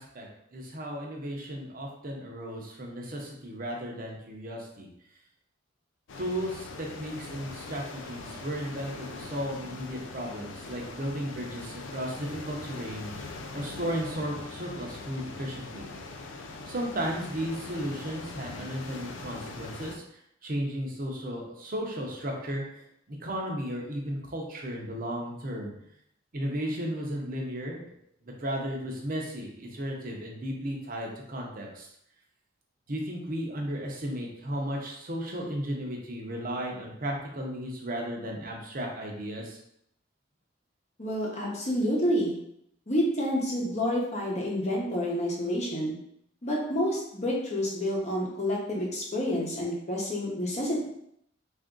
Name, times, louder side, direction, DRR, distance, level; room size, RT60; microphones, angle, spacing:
voice 1, 0.0-4.9 6.2-15.9 16.7-25.7 26.3-28.0 28.2-31.9 32.9-39.6, equal, 50° right, 0 dB, 0.8 m, -35 dB
sound 1, 6.1-20.0, left 3 dB, 85° left, 0.4 m, -42 dB
voice 2, 41.0-42.4 42.9-46.0 46.4-50.9, equal, 35° left, -2 dB, 0.9 m, -29 dB
3.5 x 2.6 x 3.7 m, 0.74 s
head